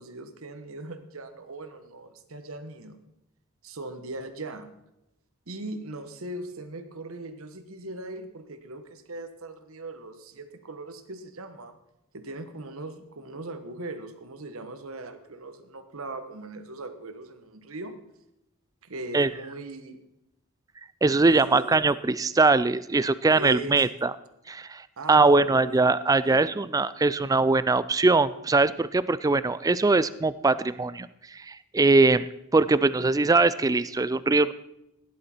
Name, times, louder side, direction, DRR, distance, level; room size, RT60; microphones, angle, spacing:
voice 1, 0.0-3.0 3.6-4.7 5.5-11.8 12.1-18.0 18.8-20.0 21.2-21.7 23.3-23.9 25.0-25.8 26.3-26.5, right 2 dB, 65° right, 9 dB, 1.2 m, -39 dB
voice 2, 21.0-24.1 24.5-31.1 31.3-32.3 32.5-34.5, right 3 dB, 15° right, 16 dB, 0.3 m, -22 dB
16.5 x 11.0 x 4.4 m, 0.88 s
head